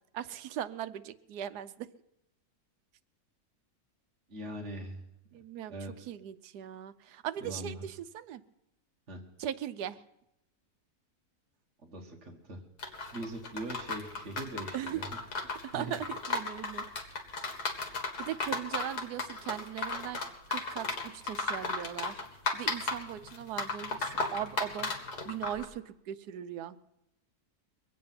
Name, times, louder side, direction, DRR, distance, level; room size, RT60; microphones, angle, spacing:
voice 1, 0.1-1.9 5.3-5.7 6.1-8.4 9.4-10.0 14.7-15.0 15.6-16.9 18.2-20.2 20.5-22.2 22.5-24.9 25.2-26.8, right 10 dB, 80° right, 13 dB, 1.2 m, -39 dB
voice 2, 4.3-5.0 5.3-5.4 5.7-6.1 7.4-7.8 9.1-9.2 11.8-12.6 13.1-15.2 15.7-16.0, right 1 dB, 50° right, 0 dB, 1.7 m, -41 dB
sound 1, 12.8-25.6, left 3 dB, 80° left, 2.2 m, -35 dB
23.0 x 8.7 x 5.7 m, 0.83 s
omnidirectional pair, 1.7 m